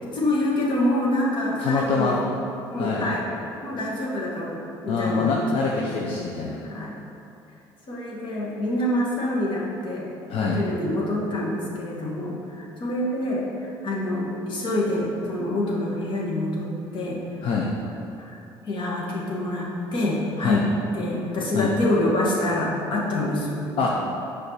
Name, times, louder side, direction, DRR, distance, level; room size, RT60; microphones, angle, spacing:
voice 1, 0.0-2.3 2.7-3.2 3.6-5.6 6.6-6.9 7.9-10.1 10.4-17.2 18.2-18.4 18.7-20.7 20.9-23.9, left 1 dB, 50° left, -3 dB, 2.2 m, -26 dB
voice 2, 1.6-2.2 2.8-3.1 4.9-6.6 10.3-10.6 17.4-17.7 20.4-20.6 21.5-21.7 23.8-23.9, left 4 dB, 70° left, -2 dB, 0.9 m, -24 dB
7.0 x 5.1 x 6.8 m, 2.7 s
cardioid pair, 95°, 10 cm